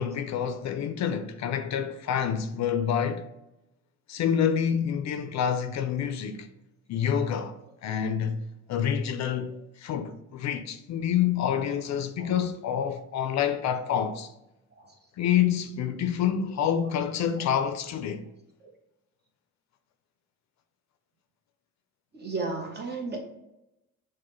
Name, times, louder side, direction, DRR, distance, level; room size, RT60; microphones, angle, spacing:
voice 1, 0.0-3.2 4.1-6.5 6.9-7.6 7.8-8.4 8.7-14.3 15.2-18.2, left 8 dB, 65° left, 0.5 m, -27 dB
voice 2, 22.1-23.2, right 3 dB, 35° right, 0.9 m, -34 dB
6.2 x 2.2 x 3.0 m
cardioid pair, 90°, 30 cm